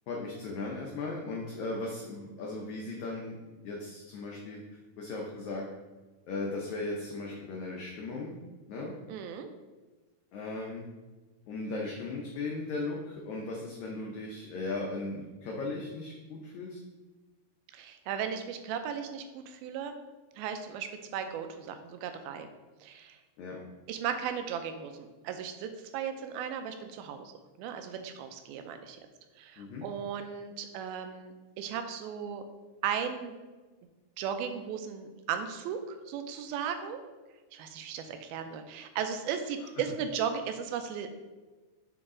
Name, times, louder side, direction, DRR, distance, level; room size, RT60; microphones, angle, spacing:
voice 1, 0.1-3.4 3.6-4.6 5.0-5.7 6.3-8.4 8.7-8.9 10.3-10.9 11.5-16.8 23.4-23.6 29.6-29.8, left 3 dB, 85° left, -1 dB, 1.6 m, -37 dB
voice 2, 9.1-9.5 17.7-20.0 20.4-22.5 22.8-23.2 23.9-27.3 27.6-29.0 29.4-32.4 32.8-33.4 34.2-37.0 37.5-41.2, right 7 dB, 85° right, 7 dB, 2.4 m, -36 dB
7.9 x 4.0 x 3.7 m, 1.2 s
omnidirectional pair, 4.3 m